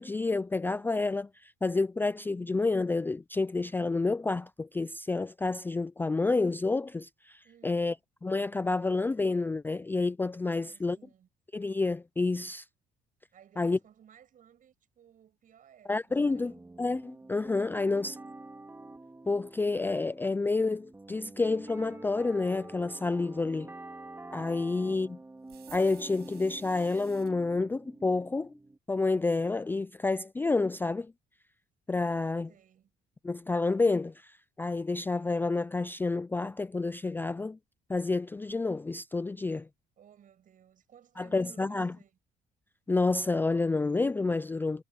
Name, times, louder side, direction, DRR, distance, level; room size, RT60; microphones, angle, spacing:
voice 1, 0.0-7.9 8.2-11.0 11.5-12.6 13.6-13.8 15.9-16.5 16.8-18.2 19.3-23.7 24.3-25.1 25.7-28.5 28.9-31.1 31.9-32.5 33.2-37.6 37.9-39.7 41.2-41.9 42.9-44.8, left 3 dB, 10° left, 0.4 m, -29 dB
voice 2, 7.4-7.9 10.5-11.3 13.3-16.6 17.7-18.4 24.6-25.0 32.5-32.9 40.0-42.2, right 9 dB, 50° right, 6.9 m, -59 dB
sound 1, 16.1-28.8, right 2 dB, 15° right, 2.4 m, -48 dB
sound 2, 25.5-27.3, right 14 dB, 75° right, 6.1 m, -55 dB
cardioid pair, 110°, 17 cm